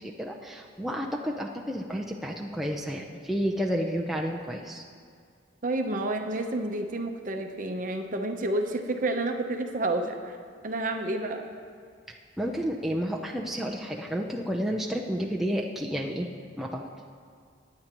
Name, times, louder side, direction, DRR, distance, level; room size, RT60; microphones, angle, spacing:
voice 1, 0.0-4.8 12.1-16.3 16.6-16.9, equal, ahead, -2 dB, 0.6 m, -31 dB
voice 2, 5.6-10.4 10.6-11.5 12.4-12.5, right 2 dB, 45° right, 4 dB, 0.8 m, -30 dB
23.5 x 9.6 x 3.0 m, 2.1 s
head